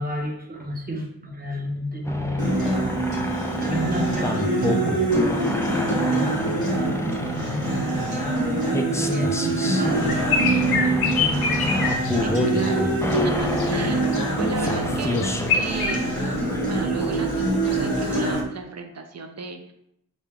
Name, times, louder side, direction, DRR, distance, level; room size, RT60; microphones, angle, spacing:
voice 1, 0.0-2.5 3.6-10.2 11.2-11.5, equal, 25° right, -2 dB, 0.9 m, -31 dB
sound 1, 2.0-18.4, left 1 dB, 10° left, 0.3 m, -29 dB
Acoustic guitar, 2.4-18.4, right 2 dB, 65° right, 1.4 m, -25 dB
sound 2, 10.0-12.7 13.1-14.3 14.6-15.9, left 5 dB, 75° left, 0.7 m, -26 dB
voice 2, 11.8-12.8 13.2-15.2 15.5-16.2 16.6-19.7, right 4 dB, 45° right, 5 dB, 0.5 m, -35 dB
3.9 x 2.3 x 3.6 m, 0.77 s
wide cardioid pair, 90°, 37 cm